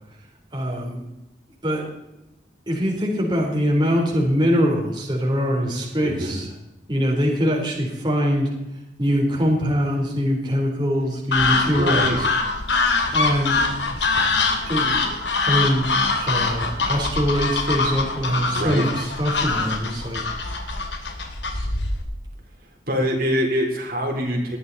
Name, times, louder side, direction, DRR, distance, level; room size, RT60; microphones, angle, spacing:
voice 1, 0.5-1.0 1.6-1.8 2.7-6.5 6.9-8.5 9.0-12.3 13.1-13.6 14.6-15.9 16.2-20.2, equal, 25° right, -2 dB, 3.7 m, -23 dB
voice 2, 6.0-6.4 11.6-12.2 18.5-18.9 22.9-24.6, equal, 55° right, 0 dB, 3.9 m, -24 dB
sound 1, 11.3-22.0, left 3 dB, 80° left, 2.8 m, -23 dB
19.5 x 12.5 x 4.2 m, 0.91 s
head